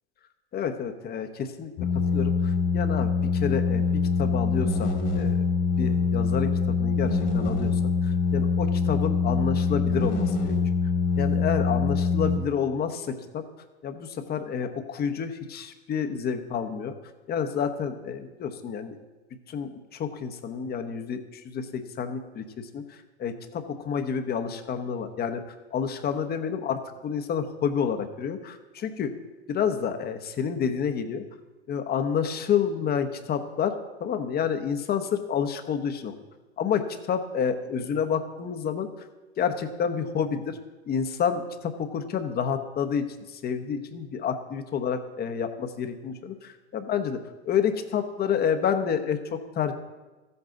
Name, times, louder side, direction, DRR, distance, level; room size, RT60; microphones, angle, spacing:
voice 1, 0.5-5.5 5.8-10.6 11.2-13.5 13.8-16.9 17.3-19.0 19.5-25.4 25.7-29.1 29.5-31.3 31.7-36.1 36.6-38.9 39.4-40.6 40.9-47.2 47.5-49.7, left 7 dB, 30° left, 7 dB, 1.0 m, -29 dB
sound 1, 1.8-12.4, left 5 dB, 65° left, 2.3 m, -24 dB
14.0 x 8.0 x 3.9 m, 1.2 s
hypercardioid pair, 100°, 33 cm